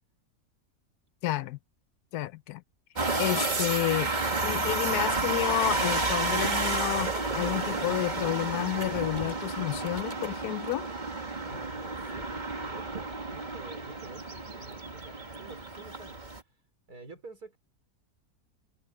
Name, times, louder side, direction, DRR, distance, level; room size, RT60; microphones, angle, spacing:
voice 1, 1.2-1.6 2.1-2.6 3.2-4.1 4.4-10.9, left 15 dB, 85° left, 1.2 m, -30 dB
sound 1, 3.0-16.4, right 3 dB, 30° right, 1.8 m, -31 dB
voice 2, 11.5-16.2 16.9-17.6, right 3 dB, 85° right, 5.1 m, -49 dB
omnidirectional pair, 1.6 m